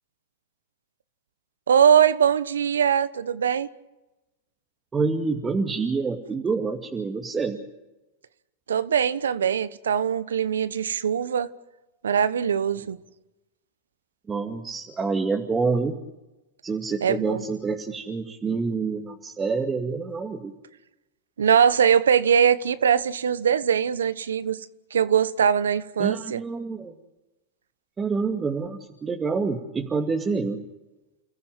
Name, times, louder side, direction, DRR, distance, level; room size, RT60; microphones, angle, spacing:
voice 1, 1.7-3.7 8.7-11.5 12.0-13.0 17.0-17.4 21.4-24.6 24.9-26.4, right 8 dB, 85° right, 1.1 m, -21 dB
voice 2, 4.9-7.6 14.3-16.0 16.6-20.5 26.0-26.9 28.0-30.6, right 4 dB, 20° right, 2.3 m, -27 dB
29.5 x 15.0 x 9.1 m
hypercardioid pair, 105°, 0 cm